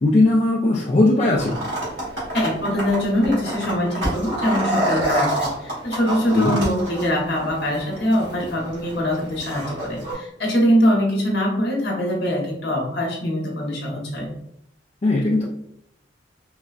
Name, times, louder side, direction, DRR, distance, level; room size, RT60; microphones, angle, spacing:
voice 1, 0.0-1.5 6.3-6.6 15.0-15.4, left 2 dB, 35° left, -4 dB, 0.4 m, -18 dB
sound 1, 1.4-10.1, right 1 dB, 70° right, 1.4 m, -28 dB
voice 2, 2.3-14.3, equal, 60° left, -2 dB, 1.0 m, -23 dB
3.8 x 2.2 x 2.4 m, 0.77 s
head